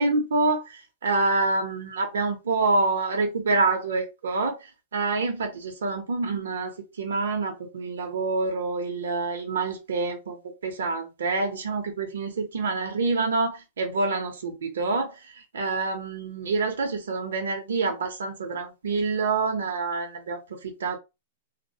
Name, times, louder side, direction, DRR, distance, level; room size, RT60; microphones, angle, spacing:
voice 1, 0.0-10.4 10.6-21.0, right 3 dB, 85° right, 0.6 m, -27 dB
2.3 x 2.0 x 2.7 m
hypercardioid pair, 130°, 0 cm